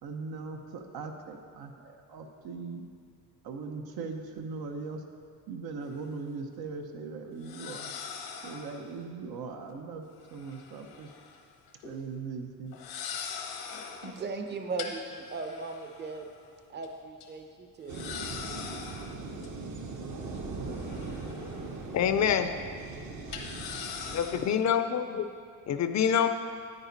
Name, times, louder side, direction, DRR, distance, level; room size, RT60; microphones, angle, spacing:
voice 1, 0.0-2.8 3.4-5.0 5.5-7.9 8.4-11.1 11.8-12.8, right 4 dB, 75° right, 4 dB, 1.0 m, -39 dB
sound 1, 5.8-5.9 7.4-8.9 10.2-11.4 11.7-11.9 12.7-14.2 14.8-16.4 16.8-16.9 17.2-17.3 17.9-19.5 20.3-21.8 22.1-22.2 23.3-24.6, left 6 dB, 90° left, 1.1 m, -42 dB
voice 2, 14.0-16.3 16.7-18.0, right 4 dB, 30° right, 5 dB, 0.7 m, -38 dB
sound 2, 17.9-24.5, right 3 dB, 50° right, 1.1 m, -40 dB
voice 3, 21.9-22.5 24.1-25.2 25.7-26.3, left 8 dB, 50° left, 9 dB, 0.5 m, -26 dB
9.6 x 9.0 x 4.0 m, 2.2 s
cardioid pair, 145°, 37 cm